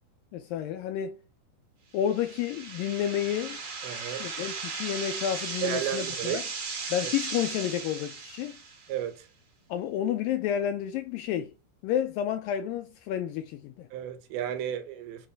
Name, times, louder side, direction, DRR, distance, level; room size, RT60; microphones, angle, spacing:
voice 1, 0.3-1.2 1.9-3.6 4.2-6.4 6.9-8.6 9.7-11.5 11.8-13.9, left 10 dB, 85° left, 2.0 m, -30 dB
sound 1, 2.0-8.9, right 4 dB, 45° right, 2.0 m, -37 dB
voice 2, 3.8-4.3 5.6-6.4 7.0-7.1 8.9-9.3 13.9-15.3, right 10 dB, 75° right, 2.8 m, -33 dB
7.3 x 4.9 x 3.4 m
omnidirectional pair, 4.5 m